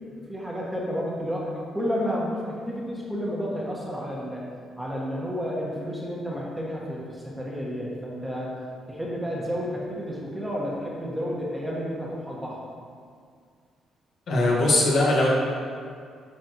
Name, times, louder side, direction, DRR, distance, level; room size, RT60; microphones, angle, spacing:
voice 1, 0.0-4.4 4.8-8.6 8.9-12.6, equal, 10° right, -5 dB, 1.4 m, -31 dB
voice 2, 14.3-15.3, left 2 dB, 65° left, -4 dB, 1.5 m, -20 dB
9.2 x 4.3 x 3.0 m, 2.2 s
cardioid pair, 90°, 0 cm